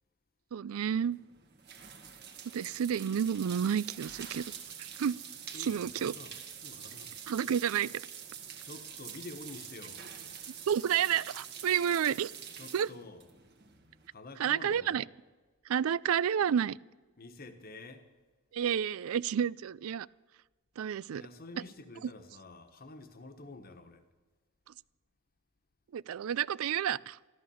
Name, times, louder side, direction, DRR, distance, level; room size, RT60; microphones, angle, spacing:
voice 1, 0.5-1.2 2.5-4.5 4.8-5.2 5.7-6.1 7.3-8.0 10.7-12.3 12.7-12.9 14.4-15.0 15.7-16.8 18.5-20.1 20.8-21.2 25.9-27.2, right 8 dB, 75° right, 0.4 m, -30 dB
sound 1, 0.8-14.1, right 8 dB, 50° right, 1.8 m, -46 dB
voice 2, 5.5-7.2 8.6-10.1 12.6-13.3 14.1-15.1 17.2-18.1 21.1-24.0, left 2 dB, 45° left, 1.3 m, -49 dB
14.0 x 13.0 x 7.1 m
head